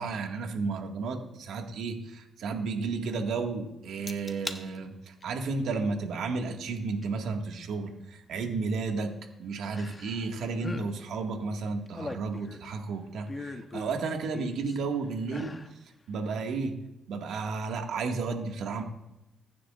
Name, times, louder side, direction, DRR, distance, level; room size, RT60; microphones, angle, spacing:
voice 1, 0.0-9.1 9.4-15.5 16.1-16.8 17.1-18.8, right 4 dB, 75° right, 3 dB, 1.9 m, -32 dB
sound 1, 4.1-4.6 5.1-5.5 7.0-7.1 9.7-10.3 10.5-10.9 11.7-12.7 13.3-14.8 15.2-15.7 16.2-16.3, left 3 dB, 25° left, 1.0 m, -40 dB
24.0 x 9.9 x 2.5 m, 0.91 s
cardioid pair, 90°, 0 cm